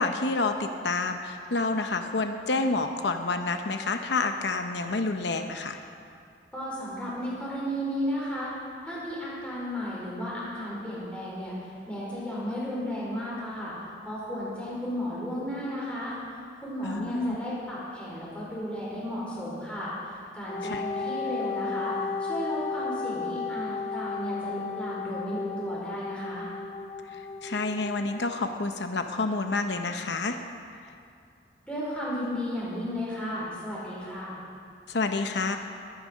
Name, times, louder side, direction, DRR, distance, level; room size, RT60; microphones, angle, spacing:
voice 1, 0.0-5.8 16.8-17.4 20.6-20.8 27.1-30.4 34.9-35.6, left 3 dB, 80° left, 6 dB, 0.8 m, -28 dB
voice 2, 6.5-8.5 8.8-16.2 16.6-21.9 22.2-26.5 31.6-34.4, equal, 5° left, -7 dB, 4.8 m, -34 dB
Wind instrument woodwind instrument, 20.5-28.2, left 4 dB, 35° left, 0.8 m, -34 dB
21.5 x 10.0 x 5.3 m, 2.4 s
head